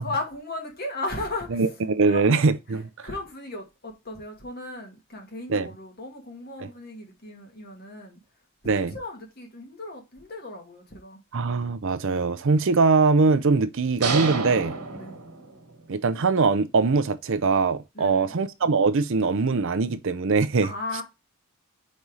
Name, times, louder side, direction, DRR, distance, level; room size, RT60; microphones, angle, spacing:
voice 1, 0.0-1.8 2.0-2.3 2.7-8.2 8.6-11.2 15.0-15.2 17.9-18.4 20.6-21.0, left 2 dB, 45° left, 2.0 m, -36 dB
voice 2, 1.5-2.9 5.5-5.7 8.7-8.9 11.3-14.7 15.9-20.7, right 4 dB, 60° right, 0.6 m, -22 dB
sound 1, 14.0-15.8, right 4 dB, 90° right, 1.5 m, -29 dB
5.3 x 4.2 x 4.7 m
head